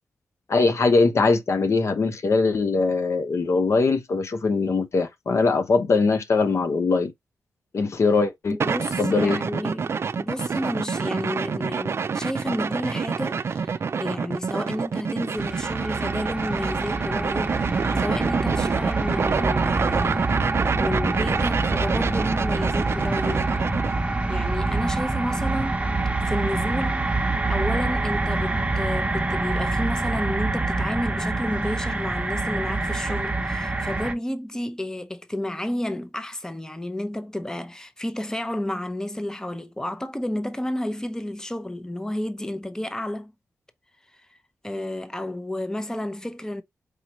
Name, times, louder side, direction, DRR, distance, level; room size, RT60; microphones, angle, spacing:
voice 1, 0.5-7.1 7.7-8.6 9.0-9.4, left 4 dB, 60° left, 0.8 m, -21 dB
voice 2, 8.5-17.6 18.0-20.4 20.8-23.5 24.3-25.8 26.3-27.1 27.5-43.3 44.1-44.4 44.6-46.6, left 1 dB, 10° left, 0.7 m, -31 dB
sound 1, 8.6-24.0, right 5 dB, 50° right, 0.3 m, -27 dB
sound 2, 15.4-34.1, right 2 dB, 20° right, 1.0 m, -26 dB
4.9 x 2.9 x 2.9 m
cardioid pair, 55°, 5 cm